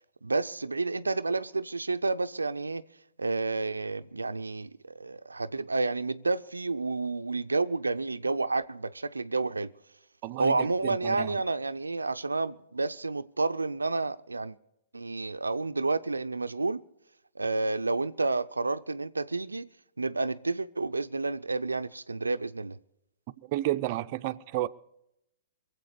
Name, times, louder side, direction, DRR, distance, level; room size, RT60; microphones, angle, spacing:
voice 1, 0.2-2.8 3.2-9.7 10.4-14.6 14.9-16.8 17.4-19.7 20.0-22.8, right 3 dB, 90° right, 0.4 m, -30 dB
voice 2, 10.2-11.4 23.5-24.7, right 15 dB, 45° right, 0.5 m, -31 dB
23.0 x 7.9 x 6.6 m
hypercardioid pair, 120°, 0 cm